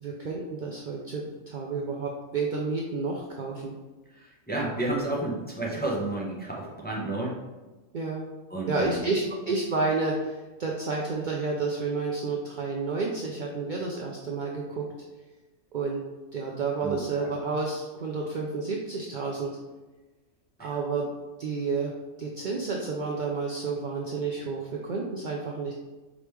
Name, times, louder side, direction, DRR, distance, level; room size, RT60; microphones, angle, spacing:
voice 1, 0.0-3.7 7.9-8.3 8.7-14.9 15.7-16.0 16.3-19.5 20.6-21.1 21.4-21.9 22.2-25.7, right 4 dB, 75° right, -1 dB, 0.4 m, -30 dB
voice 2, 4.1-7.3 8.5-9.0 16.8-17.3 20.6-20.7, right 2 dB, 10° left, -4 dB, 0.6 m, -31 dB
4.9 x 3.3 x 3.2 m, 1.2 s
omnidirectional pair, 1.4 m